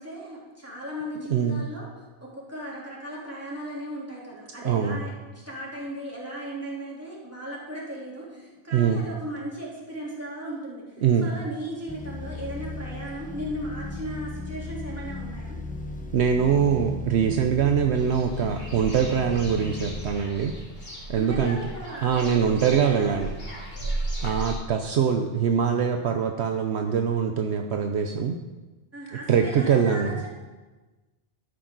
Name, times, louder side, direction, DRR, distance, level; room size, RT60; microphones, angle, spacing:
voice 1, 0.0-15.6 21.1-22.2 22.5-23.2 28.9-30.3, right 1 dB, 10° right, -6 dB, 3.4 m, -37 dB
voice 2, 1.3-1.7 4.6-5.0 8.7-9.1 11.0-11.3 16.1-20.6 21.1-21.6 22.0-23.3 24.2-28.4 29.3-30.1, right 7 dB, 70° right, 4 dB, 1.0 m, -23 dB
sound 1, 11.9-20.1, left 3 dB, 10° left, 0.9 m, -36 dB
sound 2, 17.9-24.5, right 1 dB, 55° left, 3.4 m, -35 dB
12.5 x 10.5 x 3.9 m, 1.2 s
omnidirectional pair, 1.2 m